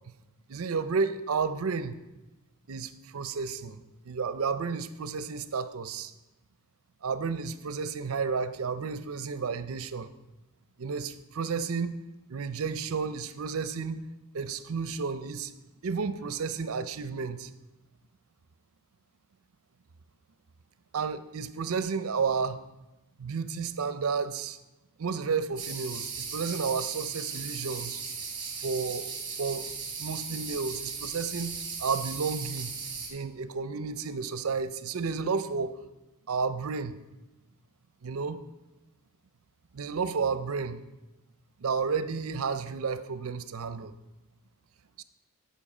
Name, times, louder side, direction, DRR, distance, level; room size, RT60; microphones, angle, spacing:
voice 1, 0.5-2.0 2.7-6.1 7.0-10.1 10.8-12.0 12.3-14.0 14.3-15.5 15.8-17.5 20.9-22.6 23.2-24.6 25.0-28.0 28.6-29.7 30.0-31.5 31.8-32.7 33.1-35.8 36.3-37.0 38.0-38.4 39.7-40.8 41.6-43.9 45.0-45.1, right 5 dB, 70° right, 12 dB, 0.5 m, -32 dB
sound 1, 25.6-33.1, right 5 dB, 20° right, 2.0 m, -37 dB
11.5 x 5.7 x 4.9 m, 0.99 s
head